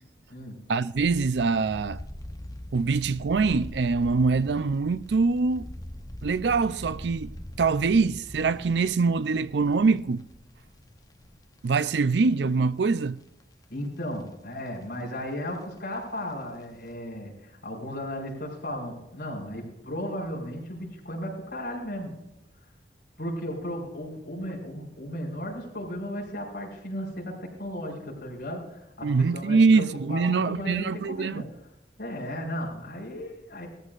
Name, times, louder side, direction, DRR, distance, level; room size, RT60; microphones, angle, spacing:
voice 1, 0.7-2.0 2.7-5.7 6.2-7.3 7.6-10.2 11.6-13.2 29.0-31.4, right 4 dB, 75° right, 0.5 m, -24 dB
sound 1, 0.9-12.4 12.8-12.9 13.4-14.2 14.5-14.7 15.0-16.3 16.6-16.9, left 1 dB, 20° left, 0.8 m, -43 dB
voice 2, 13.7-22.1 23.2-31.4 32.0-33.7, equal, 65° left, 5.1 m, -35 dB
18.0 x 14.5 x 2.5 m
head